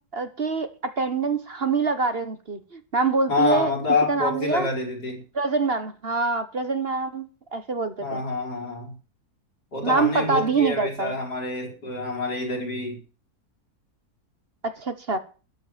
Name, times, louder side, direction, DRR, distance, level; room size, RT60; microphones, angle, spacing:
voice 1, 0.0-3.7 4.1-4.7 5.3-8.2 9.8-11.1 14.6-15.2, right 4 dB, 40° right, 1.4 m, -25 dB
voice 2, 3.3-5.2 8.0-9.0 9.7-13.0, left 3 dB, 80° left, 4.9 m, -27 dB
13.5 x 9.7 x 7.4 m
omnidirectional pair, 1.7 m